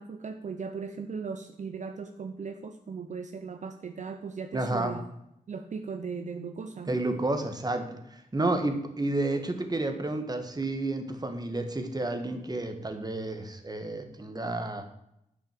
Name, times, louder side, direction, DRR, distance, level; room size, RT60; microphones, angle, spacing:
voice 1, 0.0-5.0 5.5-7.0, right 5 dB, 60° right, 6 dB, 0.8 m, -38 dB
voice 2, 4.5-4.9 6.9-14.9, right 2 dB, 30° right, 6 dB, 1.8 m, -31 dB
9.1 x 6.3 x 7.6 m, 0.79 s
cardioid pair, 70°, 14 cm